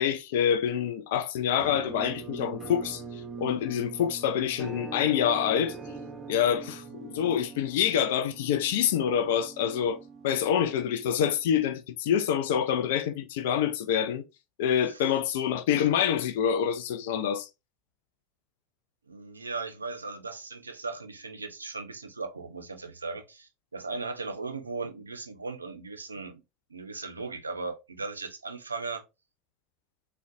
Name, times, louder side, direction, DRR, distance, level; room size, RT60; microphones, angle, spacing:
voice 1, 0.0-5.8 6.3-10.0 10.2-14.2 14.6-17.5, left 9 dB, 60° left, 0.3 m, -26 dB
Musical instrument, 1.6-11.4, right 3 dB, 20° right, 0.7 m, -42 dB
voice 2, 19.1-26.4 26.7-29.0, right 4 dB, 80° right, 0.4 m, -37 dB
3.7 x 2.1 x 2.4 m
figure-of-eight pair, 75°, 0 cm